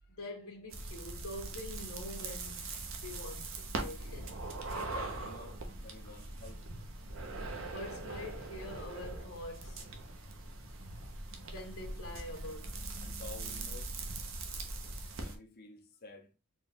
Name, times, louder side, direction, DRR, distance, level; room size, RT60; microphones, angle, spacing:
voice 1, 0.1-4.6 7.6-9.8 11.4-12.8, left 1 dB, 65° left, 1.2 m, -45 dB
sound 1, 0.7-15.4, right 2 dB, 60° right, 0.7 m, -41 dB
voice 2, 4.7-6.7 11.4-11.5 13.0-13.9 15.2-16.3, left 3 dB, 45° left, 0.7 m, -51 dB
4.3 x 2.3 x 3.5 m
head